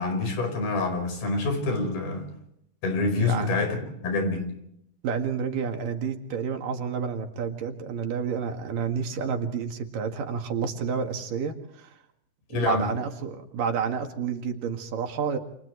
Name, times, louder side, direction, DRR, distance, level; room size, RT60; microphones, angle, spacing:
voice 1, 0.0-2.2 2.8-3.8 4.0-4.5 12.5-12.9, left 3 dB, 90° left, 5 dB, 6.9 m, -26 dB
voice 2, 3.2-3.5 5.0-12.0 12.5-15.4, right 6 dB, 70° right, 4 dB, 3.5 m, -30 dB
29.5 x 28.0 x 3.3 m, 0.73 s
omnidirectional pair, 4.1 m